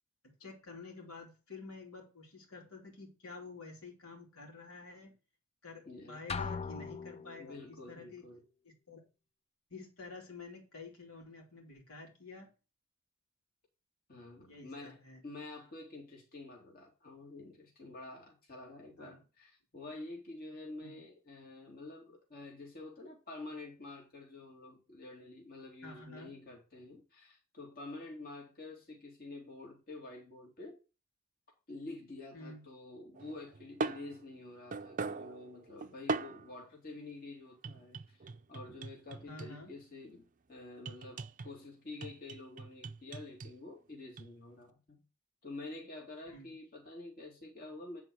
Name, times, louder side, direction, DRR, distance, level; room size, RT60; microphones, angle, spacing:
voice 1, 0.2-5.1 5.6-8.3 8.6-9.0 9.7-12.5 14.4-15.2 19.0-19.2 20.8-21.1 25.8-26.3 32.3-32.6 39.3-39.7 46.3-46.5, left 3 dB, 80° left, 3.1 m, -50 dB
voice 2, 5.9-6.4 7.4-8.4 14.1-30.8 31.7-45.0 45.4-48.0, left 2 dB, 45° left, 2.7 m, -48 dB
sound 1, 6.3-7.8, left 5 dB, 30° left, 0.4 m, -40 dB
sound 2, 33.1-36.5 37.6-39.7 40.8-41.6 42.0-43.5 44.2-44.3, right 3 dB, 40° right, 0.5 m, -40 dB
9.7 x 4.1 x 6.5 m
head